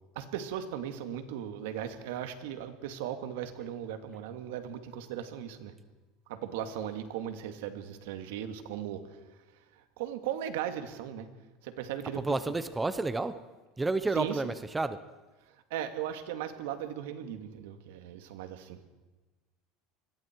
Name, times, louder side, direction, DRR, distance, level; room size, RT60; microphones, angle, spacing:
voice 1, 0.2-5.7 6.3-9.2 9.7-11.3 11.6-12.4 14.1-14.5 15.7-18.8, right 10 dB, 80° right, 8 dB, 2.2 m, -37 dB
voice 2, 12.2-13.4 13.8-15.0, right 3 dB, 10° right, 12 dB, 0.7 m, -30 dB
27.0 x 21.0 x 4.6 m, 1.2 s
cardioid pair, 180°, 0 cm